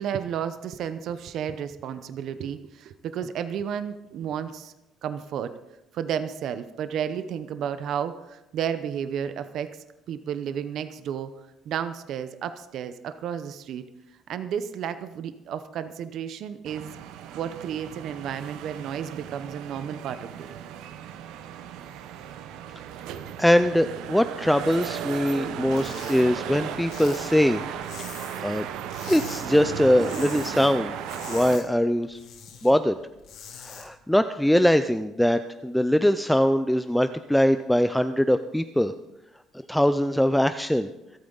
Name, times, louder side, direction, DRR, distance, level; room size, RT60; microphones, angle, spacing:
voice 1, 0.0-4.7 5.0-5.6 5.9-11.3 11.7-13.9 14.3-17.0 17.3-20.6, right 8 dB, 55° right, 11 dB, 0.7 m, -32 dB
sound 1, 16.7-31.6, right 9 dB, 80° right, 0.9 m, -36 dB
voice 2, 23.4-27.6 28.4-28.7 29.0-30.9 31.3-32.2 32.6-33.0 33.6-38.9 39.7-40.9, equal, ahead, 10 dB, 0.4 m, -22 dB
sound 2, 25.6-26.2 26.5-28.5 28.9-29.5 29.8-30.5 30.9-32.7 33.1-33.9, left 8 dB, 70° left, 3.1 m, -43 dB
26.5 x 8.8 x 3.9 m, 0.93 s
cardioid pair, 155°, 0 cm